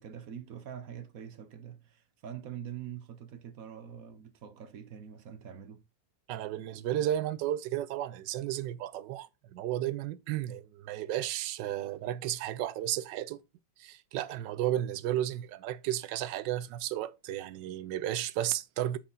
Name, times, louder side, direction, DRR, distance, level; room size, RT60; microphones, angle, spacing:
voice 1, 0.0-5.8, right 9 dB, 60° right, 1.2 m, -44 dB
voice 2, 6.3-13.4 13.8-19.0, right 12 dB, 80° right, 1.3 m, -33 dB
8.7 x 4.9 x 4.0 m
omnidirectional pair, 1.9 m